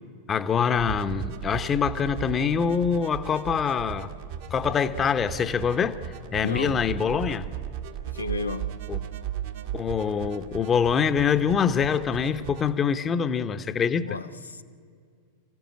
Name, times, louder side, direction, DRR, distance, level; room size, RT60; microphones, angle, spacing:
voice 1, 0.3-4.1 4.5-6.0 6.3-7.5 8.9-9.0 9.7-14.2, left 7 dB, 25° left, 0.9 m, -25 dB
sound 1, 0.8-12.7, right 10 dB, 55° right, 1.6 m, -37 dB
voice 2, 6.4-6.9 8.1-8.8 14.0-14.6, left 3 dB, 80° left, 0.6 m, -33 dB
27.5 x 15.5 x 8.8 m
figure-of-eight pair, 90°, 0 cm